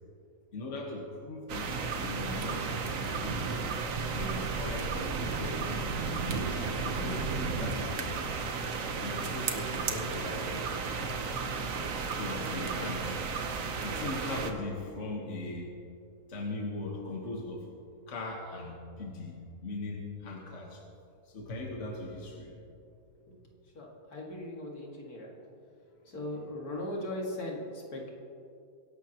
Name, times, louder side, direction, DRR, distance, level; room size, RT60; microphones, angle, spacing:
voice 1, 0.5-3.6 4.1-5.9 6.5-8.1 9.0-11.1 11.8-13.2 13.8-15.7 16.3-17.6 18.1-20.8 21.3-22.5, left 2 dB, 50° left, -1 dB, 1.7 m, -39 dB
sound 1, 1.5-14.5, right 4 dB, 60° right, 1.3 m, -33 dB
voice 2, 23.7-25.3 26.1-28.1, left 1 dB, 75° left, -2 dB, 2.6 m, -38 dB
23.0 x 11.5 x 3.0 m, 2.6 s
omnidirectional pair, 1.6 m